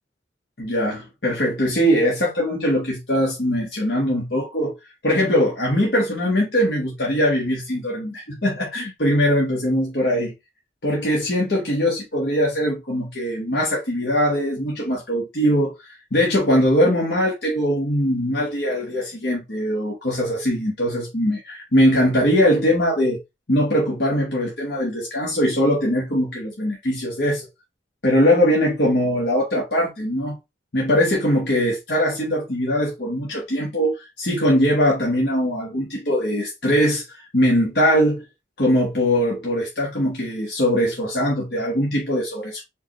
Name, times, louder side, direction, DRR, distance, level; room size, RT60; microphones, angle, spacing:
voice 1, 0.6-4.7 5.0-10.3 10.8-23.2 23.5-27.5 28.0-30.4 30.7-38.2 38.6-42.6, equal, 60° left, 1.3 m, -21 dB
4.6 x 2.6 x 3.0 m
head